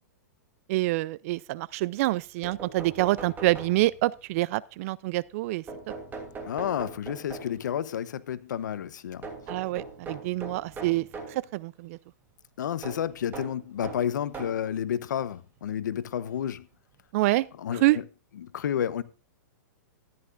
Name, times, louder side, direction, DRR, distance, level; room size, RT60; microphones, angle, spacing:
voice 1, 0.7-5.6 9.5-11.1 11.5-12.0 17.1-17.5 17.8-18.0, right 18 dB, 50° right, 0.5 m, -26 dB
sound 1, 2.4-4.2 5.7-7.7 9.2-11.4 12.8-14.7 15.6-15.7 17.0-17.1 17.4-17.5, right 4 dB, 20° right, 2.9 m, -41 dB
voice 2, 6.4-9.3 12.6-16.7 17.6-18.0 18.4-19.0, left 9 dB, 80° left, 0.9 m, -31 dB
14.0 x 10.5 x 2.5 m
hypercardioid pair, 135°, 10 cm